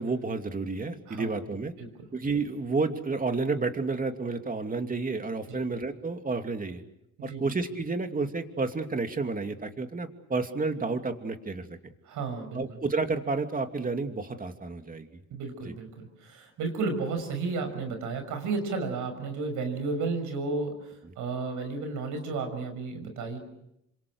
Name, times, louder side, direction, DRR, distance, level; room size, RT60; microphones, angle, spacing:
voice 1, 0.0-1.7 2.1-6.8 7.2-11.8 12.5-15.1 15.6-15.7 21.0-21.1, right 3 dB, 30° right, 6 dB, 2.8 m, -30 dB
voice 2, 7.2-7.5 12.1-12.6 15.3-20.8 21.2-23.4, right 4 dB, 85° right, 7 dB, 6.2 m, -32 dB
28.5 x 26.0 x 6.3 m, 0.80 s
cardioid pair, 90°, 30 cm